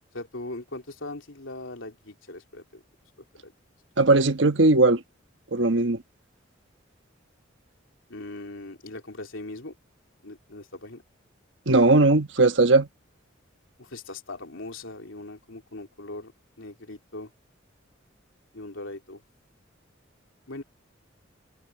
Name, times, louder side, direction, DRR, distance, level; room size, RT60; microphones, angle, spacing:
voice 1, 0.1-2.8 3.4-3.5 8.1-9.8 10.2-11.0 13.8-16.3 16.6-17.3 18.5-19.2 20.5-20.6, left 2 dB, 80° left, 3.4 m, -40 dB
voice 2, 4.0-5.0 5.5-6.0 11.7-12.9, right 2 dB, 70° right, 1.3 m, -18 dB
head